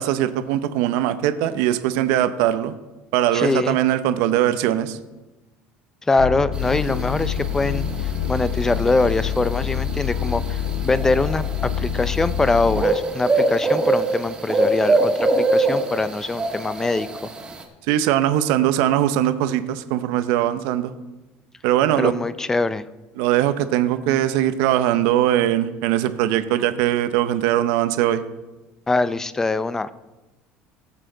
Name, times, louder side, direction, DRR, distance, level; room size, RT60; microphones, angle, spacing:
voice 1, 0.0-2.7 3.1-5.0 17.9-20.9 21.6-22.1 23.2-28.2, right 12 dB, 80° right, 11 dB, 0.7 m, -21 dB
voice 2, 3.3-3.8 6.1-7.9 8.3-17.1 22.0-22.9 28.9-29.9, left 3 dB, 10° left, 15 dB, 0.5 m, -23 dB
sound 1, 6.2-12.9, left 8 dB, 90° left, 0.7 m, -26 dB
sound 2, 6.6-17.6, right 2 dB, 20° right, 1.8 m, -24 dB
18.0 x 7.5 x 3.9 m, 1.1 s
cardioid pair, 135°, 4 cm